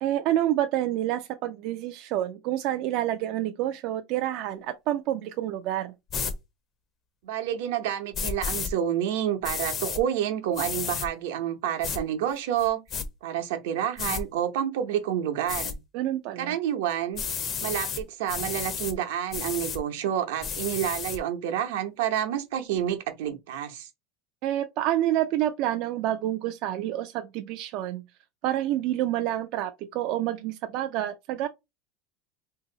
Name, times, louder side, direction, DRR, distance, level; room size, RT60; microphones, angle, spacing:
voice 1, 0.0-5.9 15.9-16.6 24.4-28.0 28.4-31.5, right 13 dB, 50° right, 0.3 m, -28 dB
sound 1, 6.1-6.3 8.1-8.7 9.4-10.0 10.5-11.1 11.8-12.0 12.6-13.1 14.0-14.2 15.5-15.7 17.1-18.0 18.3-18.9 19.3-19.8 20.4-21.2, left 6 dB, 30° left, 0.5 m, -32 dB
voice 2, 7.2-12.8 13.2-15.8 16.4-17.2 17.6-23.9, right 10 dB, 85° right, 0.8 m, -29 dB
2.8 x 2.7 x 3.8 m
supercardioid pair, 160°, 0 cm